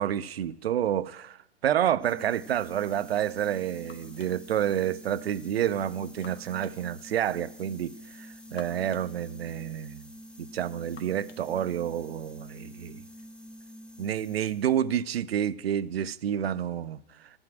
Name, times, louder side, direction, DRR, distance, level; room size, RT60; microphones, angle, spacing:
voice 1, 0.0-10.1 10.4-13.0 14.0-17.3, right 10 dB, 75° right, 0.6 m, -29 dB
sound 1, 2.0-14.9, equal, 5° left, 0.8 m, -47 dB
sound 2, 3.2-13.3, left 6 dB, 75° left, 1.6 m, -57 dB
13.0 x 6.2 x 9.0 m
hypercardioid pair, 115°, 30 cm